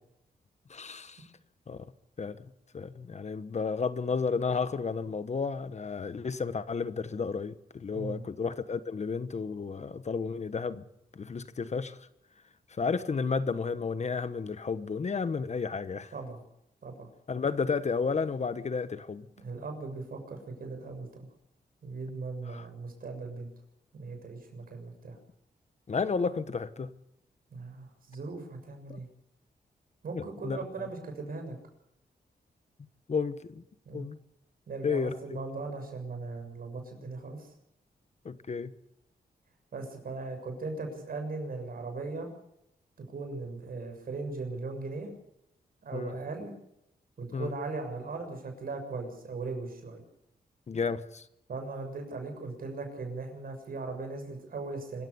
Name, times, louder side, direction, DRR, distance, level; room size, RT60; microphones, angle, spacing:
voice 1, 0.7-1.3 1.7-1.9 2.2-2.4 2.7-10.8 11.1-12.0 12.7-16.1 17.3-19.3 22.5-22.7 25.9-26.9 28.9-29.0 30.1-30.9 33.1-33.6 33.9-34.2 34.8-35.4 38.2-38.7 45.9-46.1 47.3-47.6 50.7-51.3, left 5 dB, 45° left, 1.2 m, -32 dB
voice 2, 7.9-8.3 16.1-16.4 16.8-17.1 19.4-21.3 21.8-23.5 23.9-25.2 27.5-29.1 30.0-31.6 33.9-34.1 34.7-37.5 39.7-42.3 43.1-45.1 45.8-46.5 47.2-50.0 51.5-55.0, right 3 dB, 65° right, 7.0 m, -38 dB
25.5 x 15.0 x 7.0 m
wide cardioid pair, 100°, 16 cm